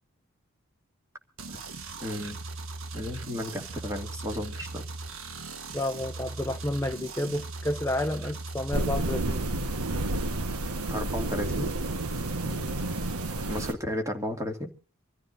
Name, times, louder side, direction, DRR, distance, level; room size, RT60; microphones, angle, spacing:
sound 1, 1.4-8.8, right 3 dB, 65° right, 1.4 m, -39 dB
voice 1, 2.0-2.4 2.9-4.8 10.9-11.7 13.5-14.7, left 1 dB, 15° right, 2.3 m, -33 dB
voice 2, 5.7-9.5 12.4-12.7, left 1 dB, 10° left, 0.6 m, -31 dB
sound 2, 8.7-13.7, right 2 dB, 90° right, 1.3 m, -30 dB
26.5 x 14.0 x 2.6 m
head